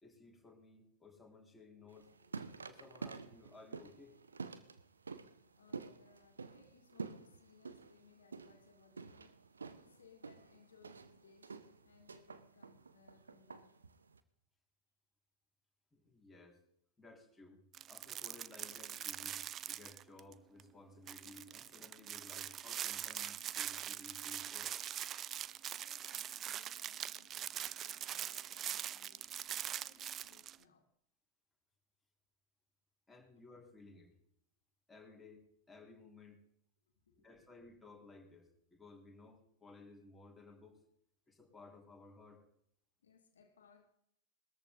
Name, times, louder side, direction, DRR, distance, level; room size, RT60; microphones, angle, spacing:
voice 1, 0.0-2.1 2.6-4.2 15.9-16.6 17.0-24.7 33.1-34.1 34.9-36.4 37.2-40.8 41.3-42.5, left 3 dB, 5° left, -1 dB, 4.0 m, -58 dB
sound 1, 1.9-14.2, right 4 dB, 75° right, 1.0 m, -49 dB
voice 2, 2.2-2.7 5.6-13.8 25.7-31.0 37.0-37.6 43.0-43.9, left 6 dB, 65° left, 4 dB, 2.1 m, -66 dB
sound 2, 17.7-20.3 20.6-20.7 21.1-30.6, right 10 dB, 30° right, 0.5 m, -43 dB
20.5 x 14.0 x 3.9 m, 0.72 s
figure-of-eight pair, 90°, 0 cm